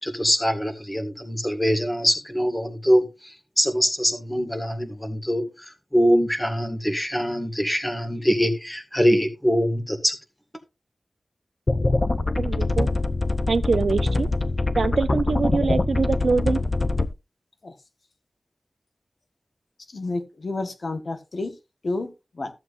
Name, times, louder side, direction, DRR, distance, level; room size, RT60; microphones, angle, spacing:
voice 1, 0.0-5.5 5.9-10.2, equal, 10° left, 1.9 m, -23 dB
sound 1, 11.7-17.1, left 2 dB, 40° left, 0.6 m, -24 dB
voice 2, 12.4-12.9 13.5-14.3 14.8-16.6, right 4 dB, 90° right, 0.5 m, -23 dB
voice 3, 19.9-21.5 21.8-22.1 22.4-22.5, left 2 dB, 70° left, 1.3 m, -29 dB
14.0 x 7.7 x 2.5 m
wide cardioid pair, 70°, 0 cm